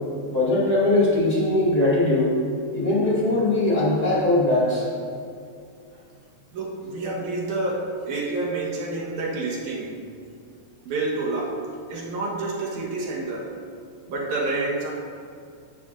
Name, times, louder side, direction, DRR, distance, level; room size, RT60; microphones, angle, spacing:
voice 1, 0.3-2.3 2.7-4.8, left 2 dB, 35° left, -8 dB, 2.3 m, -20 dB
voice 2, 6.5-10.0 10.8-11.6 11.9-13.5 14.1-14.9, right 2 dB, 70° right, -3 dB, 2.5 m, -28 dB
14.0 x 11.0 x 2.5 m, 2.4 s
omnidirectional pair, 3.7 m